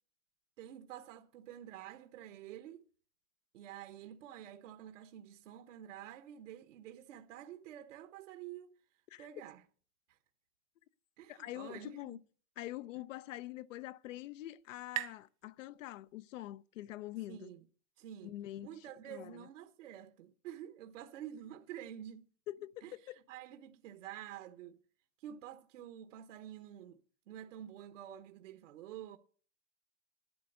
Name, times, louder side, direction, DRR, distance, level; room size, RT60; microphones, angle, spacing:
voice 1, 0.6-2.9 3.5-8.8 9.2-9.6 10.1-10.2 11.2-12.2 17.3-17.6 18.0-18.3 18.6-22.3 22.8-24.8 25.2-27.0 27.3-29.2, right 11 dB, 80° right, 1.2 m, -49 dB
voice 2, 11.3-12.2 12.6-17.5 18.2-18.8 19.1-19.5 22.5-23.2, left 15 dB, 85° left, 0.7 m, -45 dB
sound 1, 13.5-16.9, right 16 dB, 65° right, 0.9 m, -47 dB
11.5 x 9.3 x 6.6 m
supercardioid pair, 145°, 37 cm